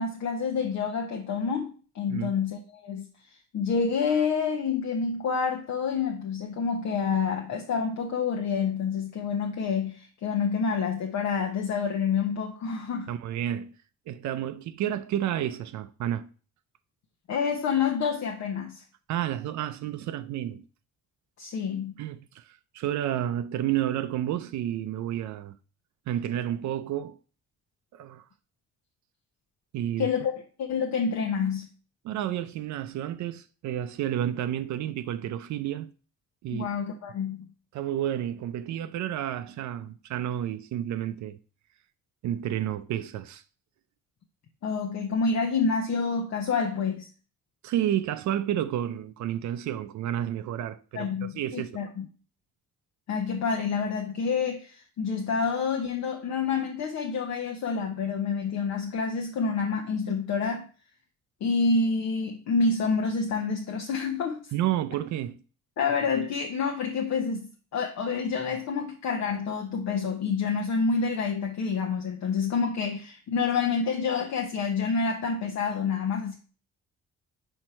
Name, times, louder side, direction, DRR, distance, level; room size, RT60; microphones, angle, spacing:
voice 1, 0.0-3.1 3.5-13.1 17.3-18.8 21.4-21.9 30.0-30.3 30.6-31.7 36.5-37.5 44.6-47.1 50.9-52.1 53.1-60.7 61.4-64.5 65.8-76.4, left 5 dB, 65° left, 0.9 m, -28 dB
voice 2, 13.1-13.8 14.1-16.3 19.1-20.6 22.0-25.6 26.1-27.2 27.9-28.2 29.7-30.1 32.0-35.9 36.4-36.7 37.7-41.4 42.2-43.4 47.6-51.8 64.5-65.4, right 11 dB, 70° right, 0.5 m, -30 dB
5.2 x 4.5 x 4.3 m
cardioid pair, 90°, 30 cm